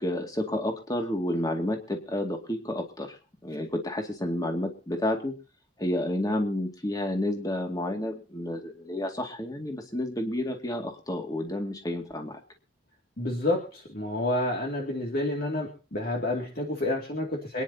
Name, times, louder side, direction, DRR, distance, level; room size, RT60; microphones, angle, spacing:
voice 1, 0.0-3.2 3.4-5.3 5.8-12.4, left 1 dB, 20° left, 3 dB, 2.2 m, -30 dB
voice 2, 13.2-17.6, left 1 dB, 50° left, 0 dB, 2.4 m, -29 dB
26.5 x 10.5 x 2.9 m, 0.34 s
head